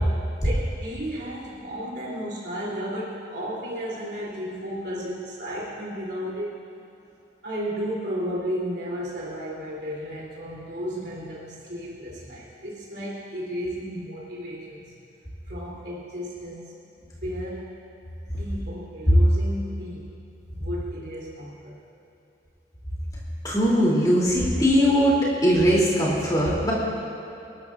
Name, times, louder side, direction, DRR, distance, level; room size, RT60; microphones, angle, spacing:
voice 1, 0.0-6.5 7.4-14.9 15.5-16.7 17.2-17.7 18.4-20.2 20.5-21.8, equal, 65° right, -7 dB, 3.3 m, -33 dB
voice 2, 23.4-25.2 25.4-26.7, equal, 20° left, -5 dB, 3.1 m, -20 dB
26.0 x 12.5 x 2.6 m, 2.8 s
head